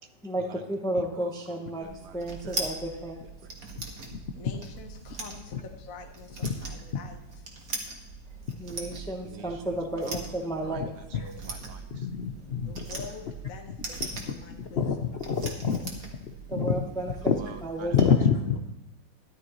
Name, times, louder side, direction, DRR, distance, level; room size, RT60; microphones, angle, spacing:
voice 1, 0.2-1.9 2.1-3.2 8.6-10.9 12.3-12.7 16.5-17.1 17.6-18.2, right 1 dB, 5° left, 2 dB, 0.7 m, -33 dB
voice 2, 0.9-3.1 3.4-3.7 9.2-12.1 17.2-18.0, right 7 dB, 65° right, 7 dB, 1.4 m, -48 dB
sound 1, 1.8-18.0, right 3 dB, 50° right, 1.9 m, -41 dB
voice 3, 4.3-7.2 7.5-7.6 12.6-15.0, left 5 dB, 50° left, 4 dB, 1.4 m, -46 dB
voice 4, 11.9-12.8 14.0-15.9 16.2-16.3 16.6-16.7 17.3-17.4 17.9-18.6, left 6 dB, 70° left, 4 dB, 0.6 m, -26 dB
13.5 x 11.0 x 3.1 m, 0.97 s
omnidirectional pair, 2.0 m